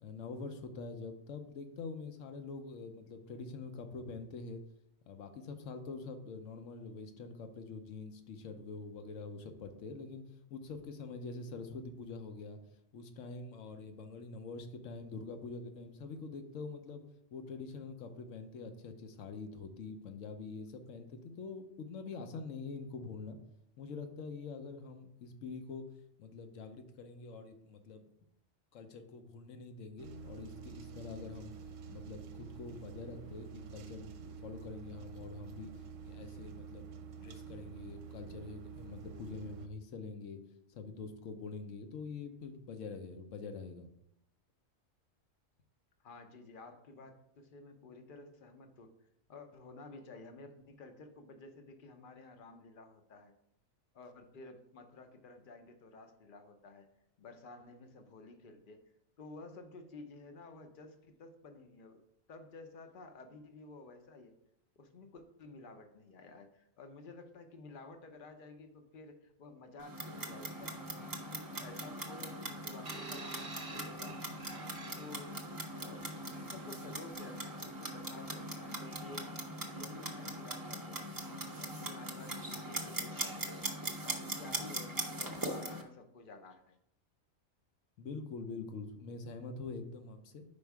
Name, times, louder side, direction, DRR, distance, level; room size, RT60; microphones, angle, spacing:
voice 1, 0.0-4.6 5.1-10.2 10.5-12.6 12.9-17.0 17.3-23.4 23.8-25.8 26.2-28.1 28.7-31.5 31.9-35.7 36.0-36.9 37.1-40.4 40.7-43.9 88.0-90.4, left 4 dB, 70° left, 7 dB, 1.1 m, -45 dB
sound 1, 30.0-39.7, right 5 dB, 75° right, 0.9 m, -48 dB
voice 2, 46.0-48.9 49.3-53.3 53.9-56.9 57.2-58.8 59.2-62.0 62.3-64.4 64.8-74.2 75.0-75.4 75.7-79.3 79.7-83.5 84.0-86.8, left 3 dB, 45° left, 6 dB, 0.8 m, -52 dB
Clock, 69.8-85.8, right 1 dB, 20° right, 0.6 m, -41 dB
sound 2, 72.9-75.4 76.3-76.5, right 3 dB, 50° right, 0.9 m, -48 dB
5.3 x 4.5 x 4.6 m, 0.76 s
omnidirectional pair, 1.4 m